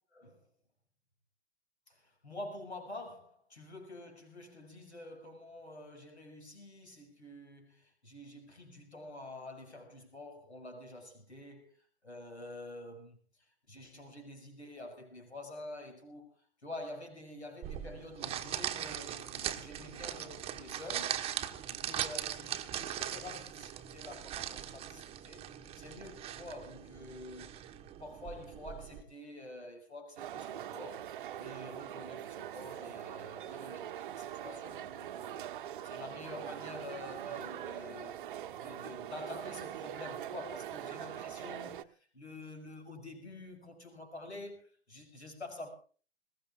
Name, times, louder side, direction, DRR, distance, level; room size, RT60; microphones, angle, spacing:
voice 1, 0.1-0.5 1.9-21.2 21.7-25.5 25.8-31.1 31.4-38.2 38.6-45.7, left 1 dB, 80° left, 6.2 m, -48 dB
sound 1, 17.6-29.0, right 11 dB, 20° right, 1.1 m, -40 dB
sound 2, 30.2-41.8, right 11 dB, 50° right, 0.9 m, -43 dB
21.5 x 19.5 x 2.5 m
figure-of-eight pair, 110°, 33 cm